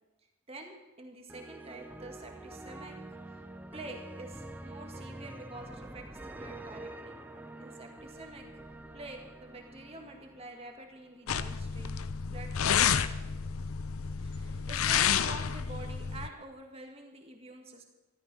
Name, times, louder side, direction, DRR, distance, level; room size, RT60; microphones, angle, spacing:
voice 1, 0.5-3.0 3.3-3.4 3.7-7.2 7.6-8.5 8.9-12.0 12.2-13.1 14.2-17.8, right 2 dB, 25° right, 3 dB, 2.1 m, -47 dB
sound 1, 1.3-11.4, right 2 dB, 10° right, 0.7 m, -46 dB
sound 2, 11.3-16.3, left 7 dB, 75° left, 0.6 m, -30 dB
14.0 x 13.5 x 6.2 m, 1.1 s
head